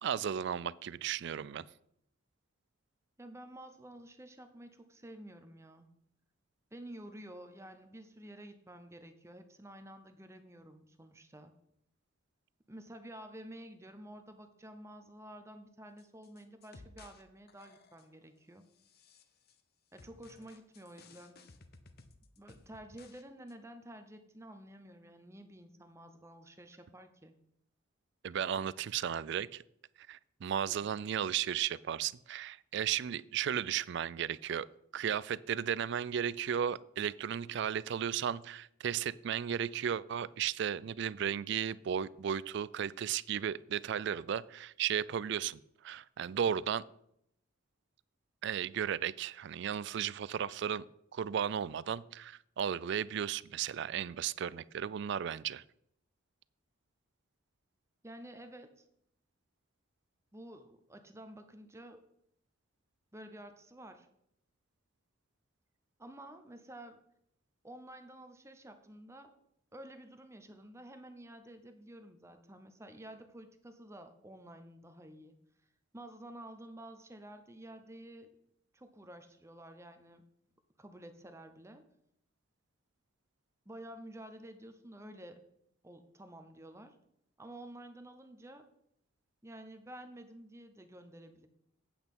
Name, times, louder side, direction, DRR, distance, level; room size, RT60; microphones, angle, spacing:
voice 1, 0.0-1.7 28.2-29.6 30.1-34.7 34.9-45.6 45.8-46.8 48.4-50.9 51.1-55.6, right 8 dB, 60° right, 20 dB, 0.3 m, -35 dB
voice 2, 3.2-5.9 6.7-11.5 12.7-18.6 19.9-21.4 22.4-27.3 30.6-30.9 58.0-58.8 60.3-62.1 63.1-64.1 66.0-67.0 67.6-69.3 69.7-75.4 75.9-78.4 78.7-80.2 80.8-81.8 83.7-85.4 85.8-87.0 87.4-88.7 89.4-91.5, right 1 dB, 15° right, 8 dB, 0.8 m, -51 dB
sound 1, 16.0-17.2 17.5-18.2 18.7-19.6 20.0-23.2 23.5-23.6, left 3 dB, 50° left, 0.9 m, -58 dB
8.6 x 8.1 x 5.4 m, 0.75 s
head